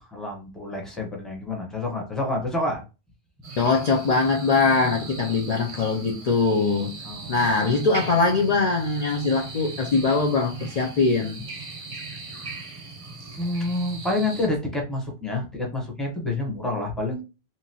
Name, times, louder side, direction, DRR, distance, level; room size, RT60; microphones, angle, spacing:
voice 1, 0.1-2.8 7.0-7.7 13.4-17.2, left 2 dB, ahead, 0.7 m, -28 dB
sound 1, 3.4-14.5, right 4 dB, 40° right, 0.6 m, -38 dB
voice 2, 3.6-6.9 7.2-11.4, left 4 dB, 50° left, 0.5 m, -22 dB
2.9 x 2.5 x 2.6 m
omnidirectional pair, 1.1 m